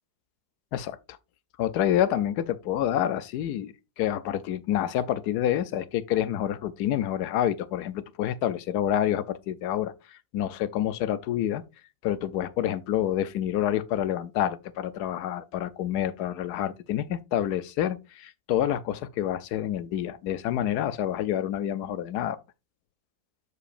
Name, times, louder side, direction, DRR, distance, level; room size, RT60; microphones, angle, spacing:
voice 1, 1.6-11.6 12.0-22.4, left 11 dB, 80° left, 1.1 m, -28 dB
11.5 x 5.0 x 2.5 m
omnidirectional pair, 1.7 m